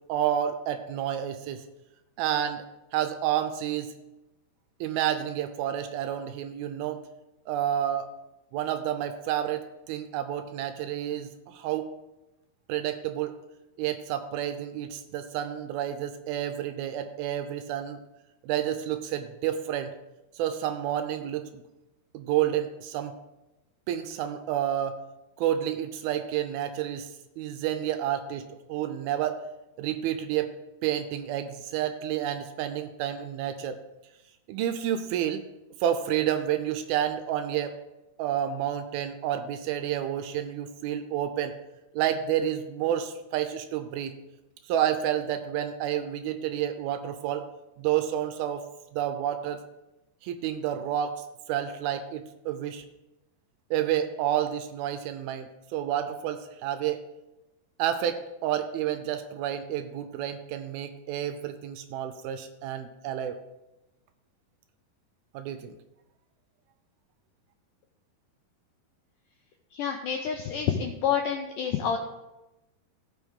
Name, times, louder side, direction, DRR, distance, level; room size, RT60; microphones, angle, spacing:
voice 1, 0.1-1.6 2.2-2.7 2.9-4.0 4.8-7.1 7.5-8.1 8.5-11.9 12.7-13.4 13.8-18.0 18.4-19.9 20.4-21.6 22.1-23.2 23.9-25.0 25.4-29.5 29.8-30.5 30.8-33.8 34.5-35.5 35.8-37.8 38.2-41.5 41.9-44.2 44.7-47.5 47.8-48.6 48.9-49.6 50.2-52.8 53.7-57.0 57.8-63.4 65.3-65.7, right 10 dB, 80° right, 9 dB, 2.3 m, -30 dB
voice 2, 69.7-72.0, left 8 dB, 90° left, 3 dB, 1.9 m, -28 dB
16.5 x 6.0 x 3.6 m, 0.98 s
omnidirectional pair, 4.6 m